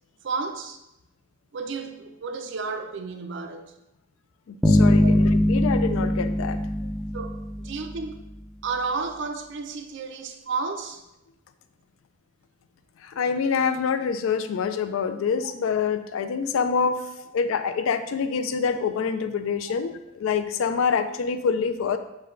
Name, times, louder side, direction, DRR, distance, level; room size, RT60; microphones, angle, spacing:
voice 1, 0.2-0.8 1.5-3.6 5.0-5.2 7.1-8.2 8.6-11.0 17.2-17.3, right 4 dB, 60° right, 6 dB, 0.4 m, -32 dB
voice 2, 4.5-6.9 13.0-17.0 17.3-22.0, left 6 dB, 85° left, 10 dB, 0.3 m, -26 dB
sound 1, 4.6-8.0, equal, ahead, 0.4 m, -21 dB
5.2 x 2.2 x 3.7 m, 0.90 s
head